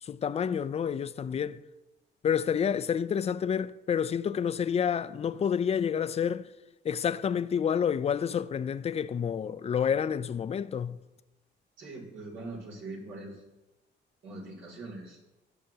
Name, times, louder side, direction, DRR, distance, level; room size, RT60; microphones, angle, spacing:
voice 1, 0.0-1.6 2.2-6.5 6.8-11.0, left 7 dB, 30° left, 0.4 m, -29 dB
voice 2, 11.8-13.4 14.2-15.2, right 2 dB, 75° right, 2.7 m, -42 dB
13.0 x 5.8 x 2.8 m
cardioid pair, 90°, 20 cm